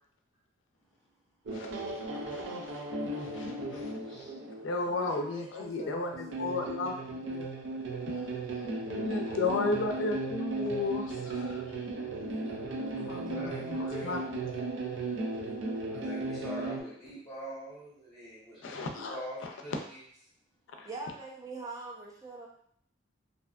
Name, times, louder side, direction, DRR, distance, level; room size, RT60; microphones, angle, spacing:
voice 1, 1.5-2.9 3.1-3.9 4.6-7.5 8.9-11.6 13.0-14.2 18.6-19.2 20.8-20.9, left 3 dB, 90° left, 3 dB, 0.4 m, -34 dB
sound 1, 1.5-5.3 6.1-16.8, right 2 dB, 90° right, 0.5 m, -36 dB
voice 2, 3.7-4.8 8.5-8.9 11.2-11.3 12.2-12.8 13.0-14.5 15.9-18.6 18.9-20.0, equal, 15° left, -11 dB, 0.8 m, -45 dB
voice 3, 4.8-6.6 13.4-13.6 20.8-22.5, right 3 dB, 20° right, -2 dB, 0.5 m, -44 dB
2.6 x 2.2 x 2.3 m, 0.63 s
head